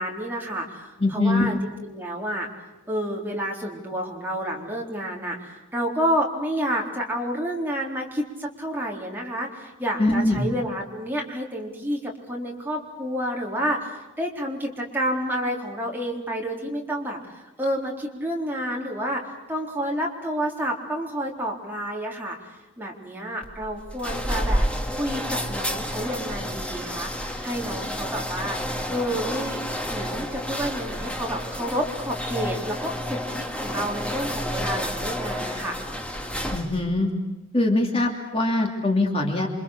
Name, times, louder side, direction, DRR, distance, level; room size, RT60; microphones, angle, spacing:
voice 1, 0.0-1.6 1.8-2.5 2.8-24.6 25.0-28.6 28.9-29.6 29.9-35.8, equal, 10° right, -2 dB, 3.9 m, -29 dB
voice 2, 1.0-1.5 10.0-10.5 36.5-37.1 37.5-39.5, left 2 dB, 30° left, 1 dB, 2.7 m, -22 dB
sound 1, 23.4-36.9, equal, 5° left, 1.8 m, -30 dB
29.0 x 25.5 x 6.7 m, 1.0 s
head